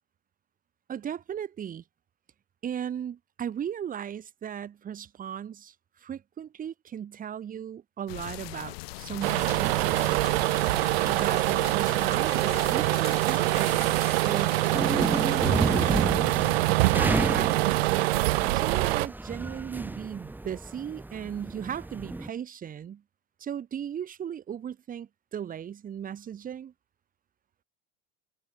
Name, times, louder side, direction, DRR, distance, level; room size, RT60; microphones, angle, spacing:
voice 1, 0.9-1.8 2.6-10.2 11.0-16.3 16.9-23.0 23.4-26.7, right 9 dB, 25° right, 1.4 m, -37 dB
sound 1, 8.1-16.0, left 21 dB, 75° left, 6.2 m, -41 dB
sound 2, 9.2-19.1, right 21 dB, 80° right, 0.5 m, -25 dB
sound 3, 14.7-22.3, right 2 dB, 5° right, 0.9 m, -31 dB
supercardioid pair, 110°, 30 cm